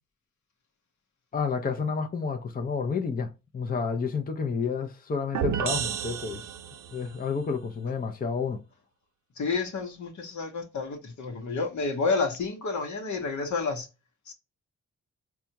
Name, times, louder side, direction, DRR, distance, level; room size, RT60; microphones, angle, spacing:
voice 1, 1.3-6.4 6.9-8.6, left 5 dB, 30° left, 0.6 m, -30 dB
sound 1, 5.3-7.0, right 7 dB, 70° right, 0.6 m, -31 dB
voice 2, 9.4-13.9 14.3-14.4, left 4 dB, 70° left, 1.0 m, -30 dB
4.1 x 2.3 x 2.8 m
cardioid pair, 70°, 31 cm